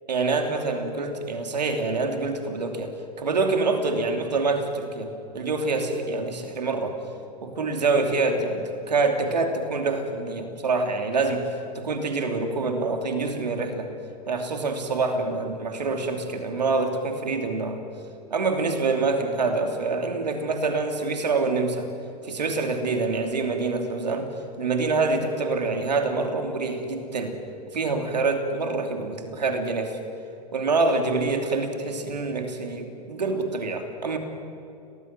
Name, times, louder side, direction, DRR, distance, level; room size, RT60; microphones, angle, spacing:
voice 1, 0.1-7.0 7.4-13.9 14.3-17.8 18.3-21.9 22.2-24.3 24.6-27.3 27.7-30.0 30.5-34.2, right 3 dB, 80° right, 5 dB, 3.0 m, -26 dB
29.0 x 18.5 x 7.6 m, 2.7 s
figure-of-eight pair, 90°, 21 cm